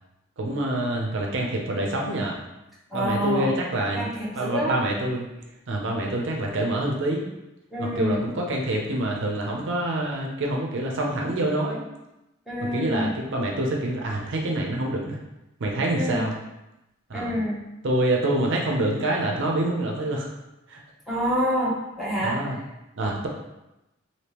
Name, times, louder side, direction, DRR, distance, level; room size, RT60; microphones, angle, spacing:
voice 1, 0.4-2.4 2.9-4.1 4.3-5.3 5.7-7.3 7.8-11.8 12.7-15.2 15.6-16.3 17.1-17.4 17.8-20.3 20.7-20.8 22.2-22.6 23.0-23.3, right 1 dB, 60° right, 0 dB, 0.5 m, -26 dB
voice 2, 2.9-3.5 3.9-4.8 7.7-8.3 12.5-13.1 16.0-16.3 17.1-17.6 21.1-22.6, equal, ahead, -8 dB, 0.8 m, -27 dB
3.4 x 2.7 x 2.9 m, 0.94 s
head